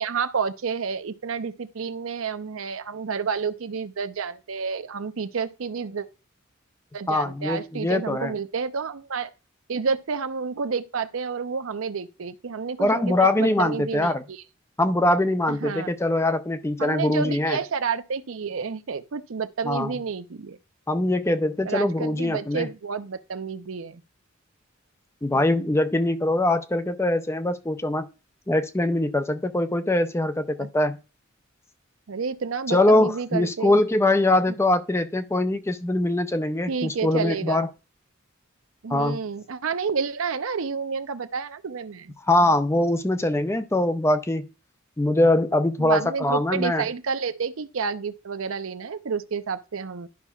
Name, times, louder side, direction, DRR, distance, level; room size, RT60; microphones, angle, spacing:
voice 1, 0.0-6.1 6.9-9.3 9.7-14.4 15.5-15.9 16.8-20.6 21.6-24.0 30.6-30.7 32.1-33.8 36.7-37.7 38.8-42.2 42.4-42.5 45.8-50.1, right 5 dB, 85° right, 0.6 m, -30 dB
voice 2, 7.1-8.3 12.8-14.2 14.8-17.6 19.6-19.9 20.9-22.7 25.2-28.1 28.5-31.0 32.7-37.7 38.9-39.2 42.3-44.5 45.0-46.8, left 1 dB, 15° left, 0.5 m, -22 dB
11.5 x 5.5 x 2.4 m
head